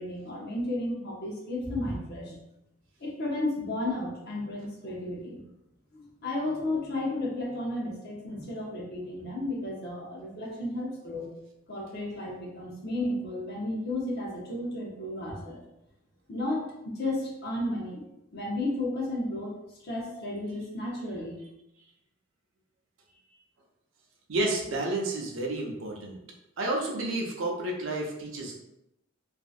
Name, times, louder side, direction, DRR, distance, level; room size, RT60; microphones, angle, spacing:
voice 1, 0.0-2.3 3.0-5.4 5.9-11.3 11.7-15.6 16.3-18.0 18.3-19.5 19.8-21.4, left 1 dB, 55° left, -3 dB, 0.8 m, -33 dB
voice 2, 24.3-26.2 26.6-28.6, right 2 dB, 75° right, 0 dB, 0.6 m, -30 dB
2.7 x 2.5 x 2.4 m, 0.87 s
head